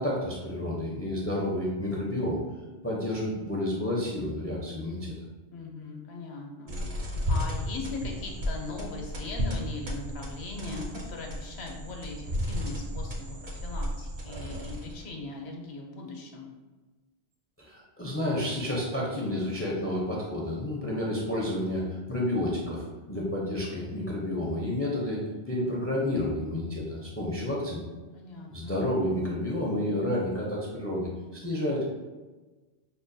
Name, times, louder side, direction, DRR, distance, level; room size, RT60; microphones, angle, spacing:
voice 1, 0.0-2.4 2.8-5.1 17.6-27.8 28.5-31.9, left 1 dB, 20° left, -4 dB, 0.4 m, -30 dB
voice 2, 5.5-6.7 7.3-16.5 28.1-28.8, left 3 dB, 70° left, 1 dB, 0.9 m, -39 dB
sound 1, 6.7-15.1, left 1 dB, 50° right, 0.7 m, -34 dB
5.5 x 2.2 x 2.6 m, 1.2 s
omnidirectional pair, 1.1 m